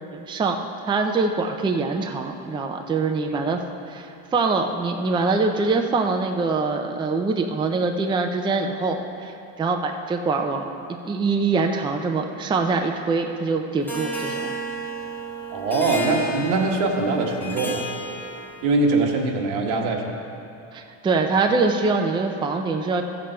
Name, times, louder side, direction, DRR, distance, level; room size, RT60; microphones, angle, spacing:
voice 1, 0.1-0.6 0.9-3.6 3.9-14.6 20.7-23.0, right 4 dB, 10° right, 4 dB, 0.5 m, -24 dB
Harp, 13.9-18.9, right 1 dB, 5° left, 0.9 m, -32 dB
voice 2, 15.5-17.9 18.6-20.2, right 3 dB, 85° right, 1 dB, 1.5 m, -23 dB
14.0 x 7.4 x 4.4 m, 2.8 s
cardioid pair, 135°, 42 cm